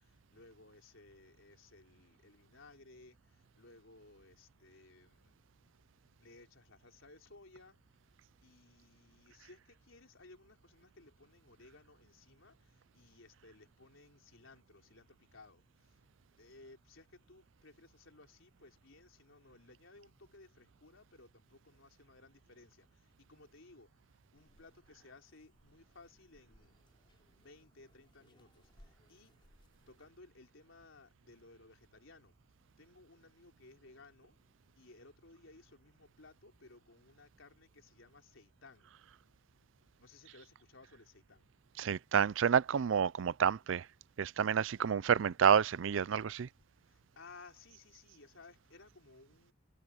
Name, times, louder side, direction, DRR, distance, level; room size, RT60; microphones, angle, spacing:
voice 1, 0.0-5.4 6.2-7.8 8.4-26.7 27.4-29.5 29.9-32.4 32.8-34.4 34.8-38.9 40.0-41.5 44.8-45.0 46.6-49.5, left 3 dB, 90° left, 3.7 m, -59 dB
sound 1, 24.3-30.1, equal, 25° left, 4.4 m, -67 dB
voice 2, 41.8-43.8 44.2-46.5, right 7 dB, 75° right, 0.4 m, -29 dB
head